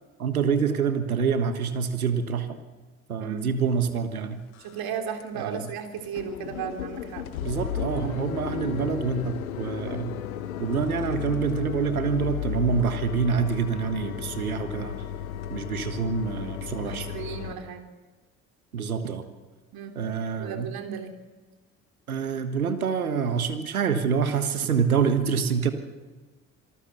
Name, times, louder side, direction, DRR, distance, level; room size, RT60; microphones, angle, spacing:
voice 1, 0.2-2.6 3.1-4.4 5.3-5.7 7.4-10.2 10.6-15.0 15.5-17.1 18.7-19.2 19.9-20.7 22.1-25.7, right 6 dB, 90° right, 10 dB, 1.5 m, -26 dB
sound 1, 3.9-4.0 4.5-4.9 5.2-5.3 5.6-5.7 6.0-17.5, left 10 dB, 80° left, 1.5 m, -34 dB
voice 2, 4.6-7.2 16.8-17.9 19.7-19.9 20.4-21.2, right 7 dB, 55° right, 5 dB, 3.4 m, -35 dB
26.5 x 19.5 x 6.8 m, 1.3 s
figure-of-eight pair, 50°, 42 cm